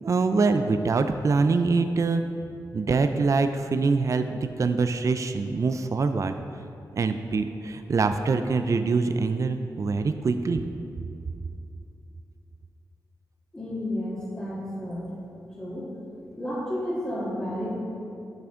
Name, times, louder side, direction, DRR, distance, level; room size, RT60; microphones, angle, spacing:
voice 1, 0.0-2.2 2.7-6.3 6.9-10.7, right 4 dB, 45° right, 8 dB, 0.4 m, -24 dB
voice 2, 13.5-15.0 15.6-15.9 16.3-17.7, left 1 dB, 20° left, -10 dB, 1.8 m, -31 dB
8.6 x 5.9 x 3.7 m, 2.6 s
cardioid pair, 65°, 7 cm